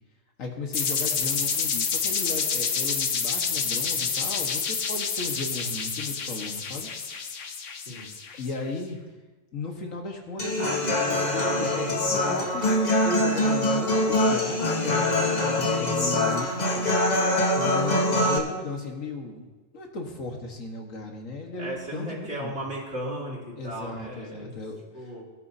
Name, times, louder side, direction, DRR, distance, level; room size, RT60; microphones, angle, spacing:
voice 1, 0.4-6.9 7.2-7.3 8.4-9.0 9.5-12.7 13.0-15.1 15.4-17.0 17.6-19.5 19.7-22.6 23.6-24.8, left 3 dB, 85° left, 2 dB, 2.0 m, -35 dB
sound 1, 0.7-8.5, left 6 dB, 70° left, 1.3 m, -28 dB
Human voice / Acoustic guitar, 10.4-18.4, left 1 dB, 35° left, 1.4 m, -24 dB
voice 2, 21.6-24.5 24.9-25.2, right 1 dB, 55° right, -5 dB, 3.5 m, -35 dB
20.0 x 10.5 x 2.8 m, 1.2 s
omnidirectional pair, 1.3 m